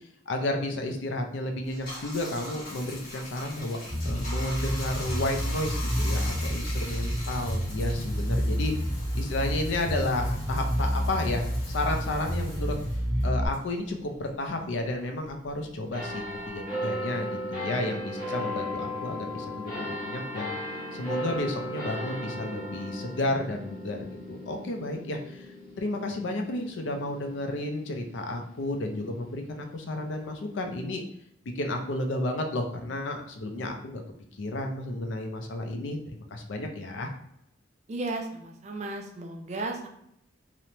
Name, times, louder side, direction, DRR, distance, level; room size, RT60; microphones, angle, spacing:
voice 1, 0.3-3.8 4.0-8.7 9.1-12.8 13.2-20.5 20.9-25.5 25.8-31.0 31.6-34.0 34.4-37.1, left 1 dB, 70° left, 4 dB, 0.4 m, -32 dB
Bathtub (filling or washing), 1.6-14.5 14.8-16.6, left 1 dB, 55° left, 0.9 m, -42 dB
Bass guitar, 3.9-13.5, equal, 10° left, 0.7 m, -29 dB
sound 1, 15.9-28.8 29.5-29.6, equal, 25° left, 1.2 m, -36 dB
voice 2, 37.9-39.9, right 2 dB, 35° right, 3 dB, 0.4 m, -34 dB
3.0 x 2.1 x 2.8 m, 0.74 s
head